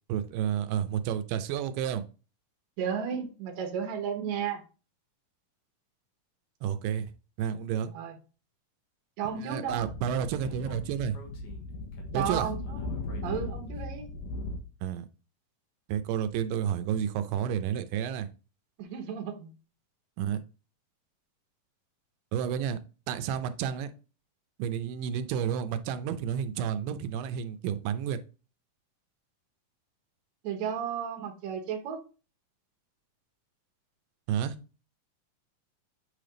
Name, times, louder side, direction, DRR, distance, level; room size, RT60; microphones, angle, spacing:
voice 1, 0.1-2.0 6.6-7.1 7.4-7.9 9.4-11.2 12.1-12.5 14.8-15.1 15.9-18.3 20.2-20.4 22.3-22.8 23.1-23.9 24.6-28.2 34.3-34.6, right 9 dB, 85° right, 2.3 m, -30 dB
voice 2, 2.8-4.6 7.8-8.2 9.2-9.9 12.1-12.8 13.2-14.1 18.8-19.5 30.4-32.0, right 7 dB, 65° right, 2.2 m, -33 dB
Speech / Wind, 9.6-14.6, left 2 dB, 70° left, 2.7 m, -37 dB
8.5 x 3.4 x 3.8 m
omnidirectional pair, 3.9 m